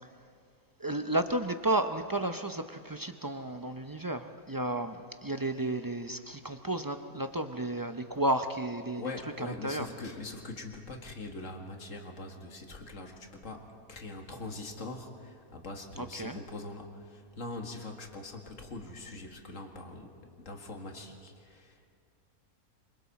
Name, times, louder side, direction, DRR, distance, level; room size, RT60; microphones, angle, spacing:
voice 1, 0.8-9.0 9.4-9.9 16.0-16.4, right 1 dB, 35° right, 7 dB, 0.3 m, -32 dB
voice 2, 9.0-21.9, left 2 dB, 60° left, 3 dB, 2.2 m, -42 dB
27.0 x 24.5 x 4.2 m, 2.2 s
omnidirectional pair, 1.5 m